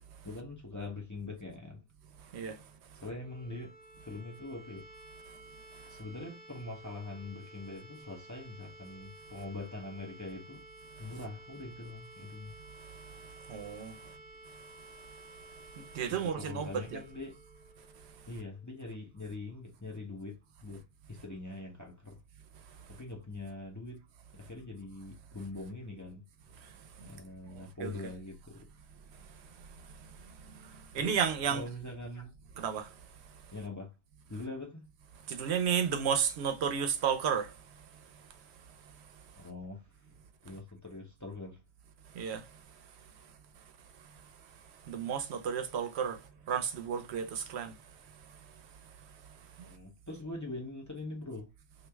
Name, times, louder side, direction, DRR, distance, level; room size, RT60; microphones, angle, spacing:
voice 1, 0.2-1.8 2.9-4.9 5.9-10.7 11.0-12.6 14.0-14.1 16.0-17.4 18.3-20.8 21.1-22.2 22.9-24.0 24.3-26.2 27.0-28.7 30.9-31.2 31.5-32.3 33.5-33.9 34.3-34.9 39.4-39.9 40.4-41.6 49.6-51.5, left 2 dB, 20° left, 0.6 m, -43 dB
sound 1, 3.1-18.9, right 2 dB, 40° left, 1.6 m, -54 dB
voice 2, 13.5-13.9 15.9-17.0 27.8-27.9 30.9-31.6 32.6-32.9 35.3-37.5 42.2-42.4 44.9-46.2 46.5-47.7, right 7 dB, 85° right, 0.9 m, -32 dB
3.1 x 2.5 x 3.3 m
omnidirectional pair, 1.1 m